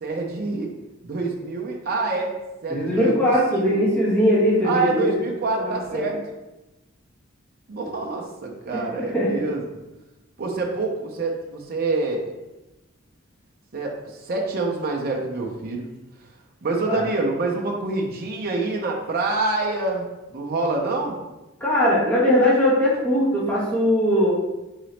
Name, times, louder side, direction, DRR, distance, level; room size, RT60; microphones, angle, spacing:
voice 1, 0.0-0.7 1.0-2.4 2.6-3.8 4.6-6.2 7.7-9.6 10.4-12.3 13.7-15.9 16.6-20.0 20.3-21.2, right 3 dB, 45° right, 0 dB, 0.5 m, -26 dB
voice 2, 2.7-5.1 5.6-6.1 8.7-9.4 16.9-17.0 21.6-24.3, equal, 10° left, -8 dB, 1.1 m, -20 dB
3.9 x 3.8 x 3.2 m, 1.0 s
head